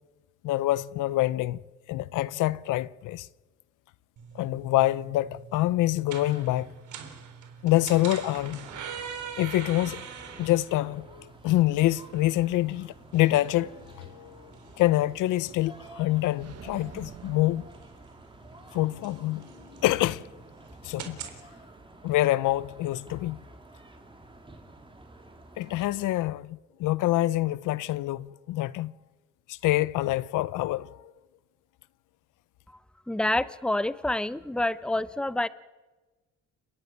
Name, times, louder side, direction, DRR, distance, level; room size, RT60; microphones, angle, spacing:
voice 1, 0.4-1.6 1.9-3.3 4.3-6.7 7.6-8.7 9.4-10.1 10.4-14.5 14.8-17.7 18.7-20.3 20.8-21.2 22.0-23.4 25.6-28.9 29.5-31.1, left 16 dB, 90° left, 0.7 m, -26 dB
sound 1, 4.2-21.4, right 7 dB, 75° right, 3.8 m, -45 dB
sound 2, 7.9-26.2, right 2 dB, 15° right, 3.5 m, -51 dB
sound 3, 16.4-18.6, right 8 dB, 55° right, 1.2 m, -47 dB
voice 2, 33.1-35.5, left 1 dB, 5° left, 0.8 m, -27 dB
30.0 x 11.5 x 9.4 m
cardioid pair, 90°, 30 cm